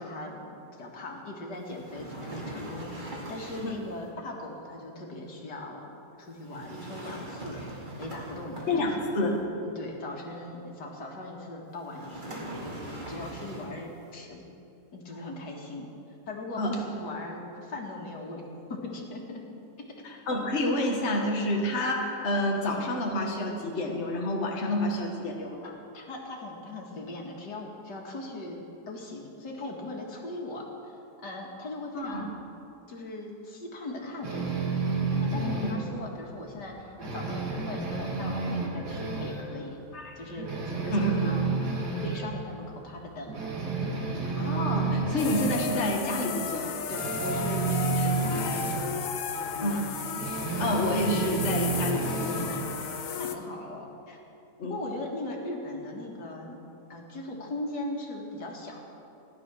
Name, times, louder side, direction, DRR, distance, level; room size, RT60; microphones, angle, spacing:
voice 1, 0.0-7.6 8.0-9.2 9.6-14.4 14.9-15.9 16.3-18.4 18.7-19.4 20.1-20.2 21.5-21.7 25.9-28.6 28.9-32.3 32.9-34.7 35.1-39.8 40.2-41.5 41.8-43.4 44.0-44.3 46.9-48.9 49.5-49.8 52.4-52.7 53.2-54.2 54.6-56.6 56.9-58.8, left 2 dB, 85° left, 0 dB, 2.5 m, -39 dB
sound 1, 1.6-3.9 6.4-9.2 11.9-13.9, right 1 dB, 30° right, 2.4 m, -41 dB
voice 2, 8.7-9.4 16.6-16.8 20.0-25.7 31.9-32.3 35.6-35.7 39.9-40.1 40.9-41.3 44.4-46.7 48.0-48.6 49.6-49.8 50.6-52.4 54.6-54.8, left 1 dB, 45° left, 0 dB, 1.8 m, -29 dB
sound 2, 34.2-35.9 36.3-36.4 36.8-39.5 39.9-40.0 40.4-42.3 42.7-42.8 43.3-45.6 46.9-48.8 50.1-52.5, right 4 dB, 75° right, 2.6 m, -30 dB
sound 3, 45.2-53.4, left 6 dB, 60° left, 1.1 m, -34 dB
15.5 x 11.5 x 6.2 m, 2.8 s
omnidirectional pair, 1.8 m